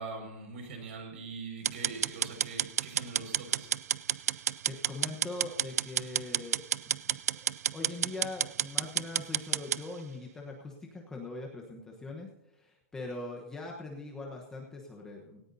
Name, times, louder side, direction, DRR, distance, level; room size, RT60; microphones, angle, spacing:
voice 1, 0.0-3.7, right 4 dB, 50° right, 3 dB, 5.5 m, -42 dB
sound 1, 1.6-9.8, right 10 dB, 80° right, 0.5 m, -30 dB
voice 2, 4.7-15.4, left 2 dB, 5° left, -1 dB, 1.1 m, -42 dB
18.0 x 17.5 x 2.7 m, 0.92 s
supercardioid pair, 180°, 8 cm